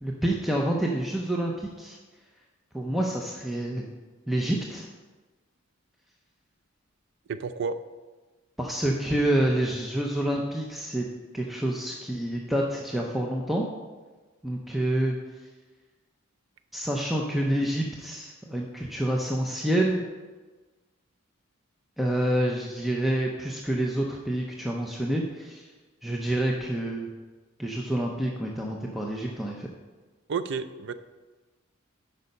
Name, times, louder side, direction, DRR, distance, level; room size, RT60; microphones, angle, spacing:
voice 1, 0.0-2.0 2.7-3.9 4.3-4.9 8.6-11.0 11.3-13.6 14.4-15.2 16.7-20.0 22.0-25.6 26.0-27.1 27.6-29.7, right 1 dB, ahead, -1 dB, 0.5 m, -28 dB
voice 2, 7.3-7.7 30.3-30.9, right 5 dB, 55° right, 12 dB, 0.4 m, -30 dB
8.2 x 5.4 x 5.3 m, 1.3 s
head